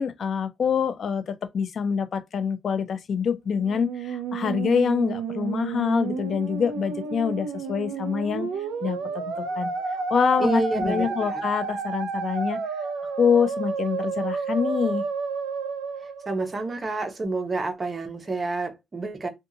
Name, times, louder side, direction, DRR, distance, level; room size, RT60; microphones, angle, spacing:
voice 1, 0.0-8.5 8.8-9.7 10.1-12.6 13.2-15.0, left 7 dB, 55° left, 0.4 m, -25 dB
Musical instrument, 3.5-16.9, right 5 dB, 90° right, 0.5 m, -31 dB
voice 2, 10.4-11.4 16.0-19.3, right 3 dB, 30° right, 0.8 m, -29 dB
2.7 x 2.3 x 2.7 m
cardioid pair, 90°, 0 cm